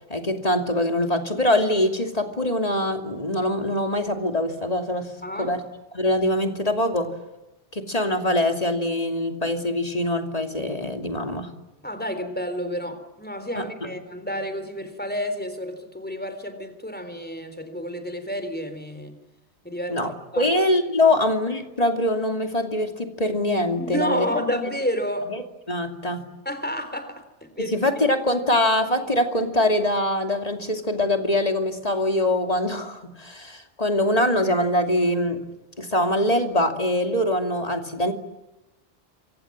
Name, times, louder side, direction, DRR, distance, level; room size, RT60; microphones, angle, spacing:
voice 1, 0.1-5.1 5.4-5.6 5.9-7.1 7.7-11.5 13.6-13.9 19.9-24.3 25.3-25.4 25.7-26.2 27.6-35.4 35.8-38.1, left 1 dB, 35° left, 5 dB, 2.8 m, -23 dB
voice 2, 5.2-5.6 11.8-19.2 19.6-20.0 20.3-20.5 21.0-21.1 23.8-25.3 26.5-27.8, equal, 10° left, 9 dB, 3.7 m, -30 dB
28.0 x 24.5 x 7.5 m, 1.0 s
omnidirectional pair, 1.2 m